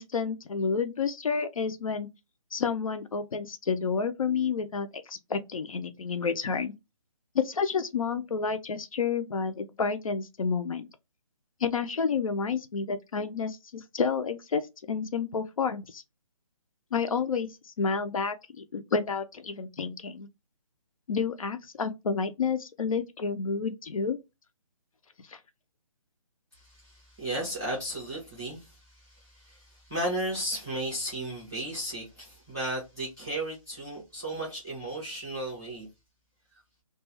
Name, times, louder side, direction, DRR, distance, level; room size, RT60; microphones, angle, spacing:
voice 1, 0.0-2.1 2.5-6.7 7.3-10.9 11.6-16.0 16.9-20.3 21.1-24.2 25.3-25.4, left 5 dB, 70° left, 0.5 m, -30 dB
voice 2, 26.5-35.9, right 1 dB, 5° right, 0.4 m, -35 dB
2.3 x 2.3 x 3.0 m
hypercardioid pair, 180°, 18 cm